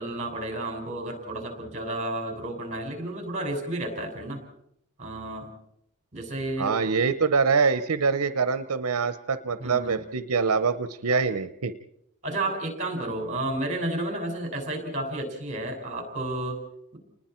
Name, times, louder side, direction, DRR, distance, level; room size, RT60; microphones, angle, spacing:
voice 1, 0.0-4.4 5.0-5.5 6.1-6.7 9.6-10.0 12.2-16.6, right 1 dB, 30° right, 3 dB, 5.5 m, -31 dB
voice 2, 6.6-11.7, right 5 dB, 80° right, 12 dB, 0.8 m, -24 dB
29.5 x 20.0 x 4.4 m, 0.76 s
head